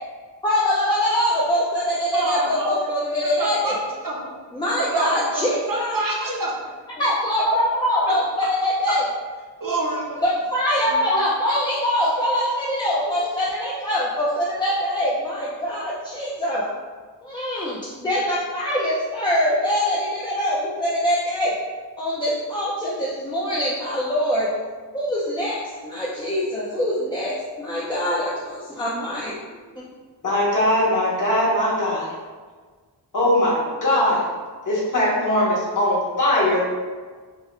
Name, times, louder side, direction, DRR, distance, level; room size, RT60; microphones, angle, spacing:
voice 1, 0.4-3.8 4.5-6.0 7.0-9.0 10.2-16.7 17.2-21.6 22.0-24.5 24.9-29.4 29.7-29.8, equal, 10° left, -8 dB, 0.4 m, -23 dB
voice 2, 2.1-2.9 3.2-3.7 4.0-4.3 4.9-6.5 8.1-8.2 8.9-9.0 9.6-10.2 11.1-11.2, right 2 dB, 50° right, -3 dB, 0.6 m, -26 dB
voice 3, 30.2-32.1 33.1-34.3 34.7-36.6, left 1 dB, 45° left, -6 dB, 0.9 m, -20 dB
3.7 x 2.1 x 3.1 m, 1.5 s
wide cardioid pair, 140°, 43 cm